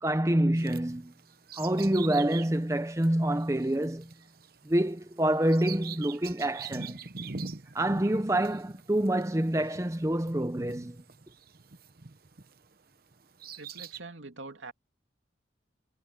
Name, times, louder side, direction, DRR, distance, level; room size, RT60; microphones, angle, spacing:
voice 1, 0.0-1.1 1.6-4.1 4.6-7.0 7.7-11.0, right 1 dB, 15° right, 0.7 m, -27 dB
Bird vocalization bird call bird song, 0.6-12.7 13.1-14.0, right 5 dB, 50° right, 1.0 m, -44 dB
voice 2, 13.5-14.7, right 3 dB, 80° right, 2.6 m, -44 dB
head